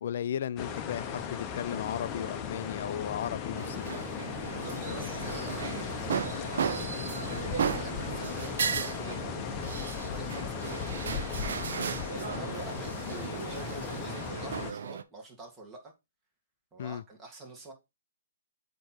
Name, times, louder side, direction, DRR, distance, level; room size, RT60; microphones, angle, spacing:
voice 1, 0.0-4.1 16.8-17.0, left 9 dB, 55° left, 0.4 m, -35 dB
sound 1, 0.6-14.7, left 7 dB, 25° left, 0.7 m, -37 dB
sound 2, 3.6-15.0, right 7 dB, 65° right, 0.6 m, -36 dB
voice 2, 4.5-7.1 7.7-11.2 12.2-15.9 16.7-17.7, right 2 dB, 15° right, 1.8 m, -46 dB
7.9 x 3.0 x 4.3 m
hypercardioid pair, 135°, 0 cm